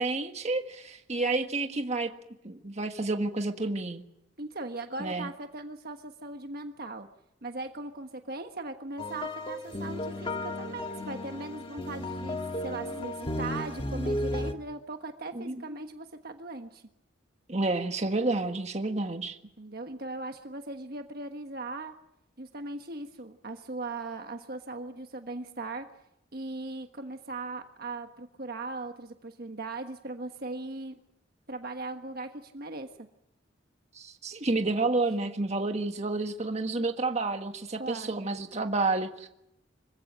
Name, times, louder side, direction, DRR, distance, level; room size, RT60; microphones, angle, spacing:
voice 1, 0.0-2.1 2.4-4.0 5.0-5.3 15.3-15.8 17.5-19.4 33.9-39.3, right 2 dB, 35° right, 6 dB, 1.6 m, -30 dB
voice 2, 4.4-7.1 7.4-12.4 12.6-16.8 19.6-21.9 22.4-25.8 26.3-30.9 31.5-32.9 37.8-38.3, right 2 dB, 50° right, 6 dB, 1.4 m, -39 dB
sound 1, 9.0-14.5, left 1 dB, 30° left, 1.5 m, -34 dB
26.0 x 16.0 x 9.2 m, 0.82 s
head